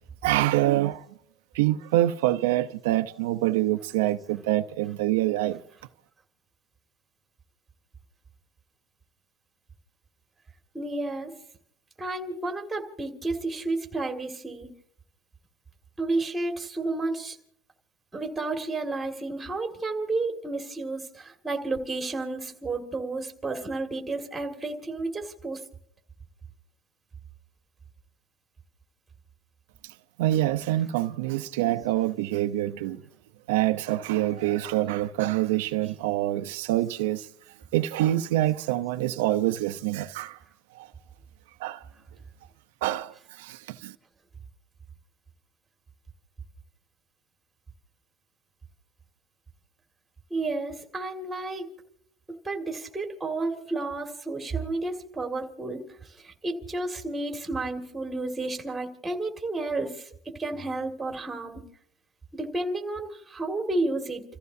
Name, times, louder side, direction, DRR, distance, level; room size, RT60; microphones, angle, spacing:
voice 1, 0.2-1.1 1.5-5.6 30.2-33.0 33.5-37.3 37.7-40.4 40.8-40.9 41.6-41.8 42.8-43.9, right 15 dB, 85° right, 0.7 m, -26 dB
voice 2, 10.7-11.3 12.0-14.7 16.0-17.4 18.1-25.6 50.3-51.7 52.4-55.8 56.2-60.0 60.4-61.6 62.3-64.2, right 2 dB, 10° right, 2.2 m, -31 dB
30.0 x 15.0 x 2.7 m
supercardioid pair, 150°, 0 cm